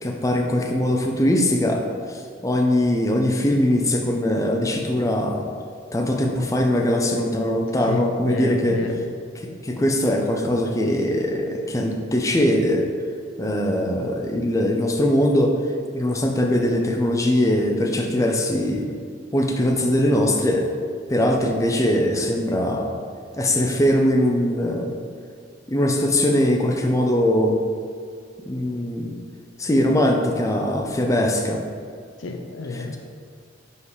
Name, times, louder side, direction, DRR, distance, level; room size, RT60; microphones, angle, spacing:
voice 1, 0.0-5.4 5.9-8.8 9.6-12.9 13.4-15.5 15.9-18.9 19.3-20.7 21.1-23.0 23.4-24.9 25.7-27.6 28.5-29.1 29.6-31.6, left 1 dB, 15° left, 1 dB, 0.5 m, -21 dB
voice 2, 7.8-9.1 32.2-33.0, left 2 dB, 85° left, 5 dB, 0.7 m, -30 dB
5.5 x 4.7 x 4.9 m, 2.1 s
head